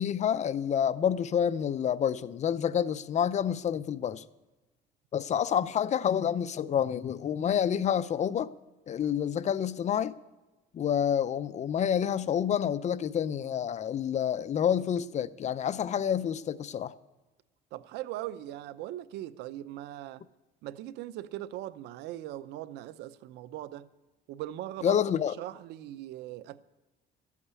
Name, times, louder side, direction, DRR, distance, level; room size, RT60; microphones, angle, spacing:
voice 1, 0.0-4.2 5.1-8.5 8.9-10.1 10.7-16.9 24.8-25.3, left 9 dB, 45° left, 0.6 m, -28 dB
voice 2, 17.7-20.2 20.6-23.9 24.3-25.0 25.4-26.6, right 14 dB, 85° right, 0.7 m, -40 dB
13.5 x 8.5 x 8.3 m
cardioid pair, 110°, 17 cm